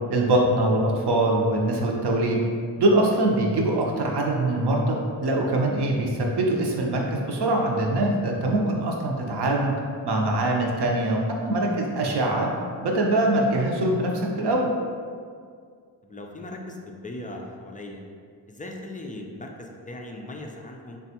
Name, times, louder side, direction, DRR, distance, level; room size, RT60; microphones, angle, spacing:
voice 1, 0.1-2.4 2.8-9.7 10.0-12.5 12.8-14.7, right 1 dB, 60° right, 0 dB, 0.7 m, -23 dB
voice 2, 16.0-18.0 18.5-21.0, left 1 dB, 20° left, 1 dB, 0.3 m, -38 dB
3.3 x 2.3 x 2.8 m, 2.1 s
supercardioid pair, 45°, 46 cm